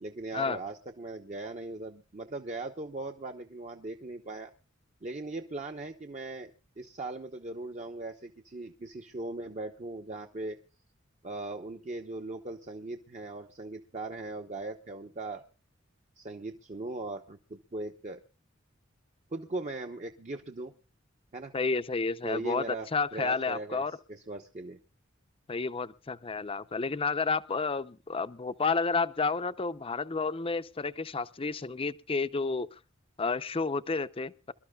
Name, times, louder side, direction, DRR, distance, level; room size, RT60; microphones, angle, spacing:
voice 1, 0.0-4.5 5.0-6.5 6.8-10.6 11.2-15.4 16.2-18.2 19.3-20.7 21.3-21.5 22.2-24.8, right 2 dB, 35° right, 0.9 m, -39 dB
voice 2, 21.5-24.0 25.5-32.7 33.2-34.5, left 4 dB, 30° left, 0.6 m, -31 dB
27.0 x 12.5 x 2.3 m
head